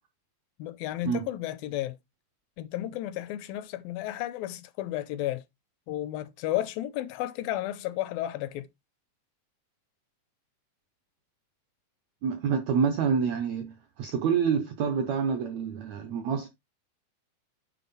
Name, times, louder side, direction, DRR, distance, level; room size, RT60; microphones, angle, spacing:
voice 1, 0.6-2.0 2.6-5.4 5.9-8.7, left 14 dB, 80° left, 2.3 m, -33 dB
voice 2, 12.2-16.5, right 6 dB, 80° right, 1.6 m, -27 dB
9.5 x 3.7 x 4.1 m
omnidirectional pair, 4.3 m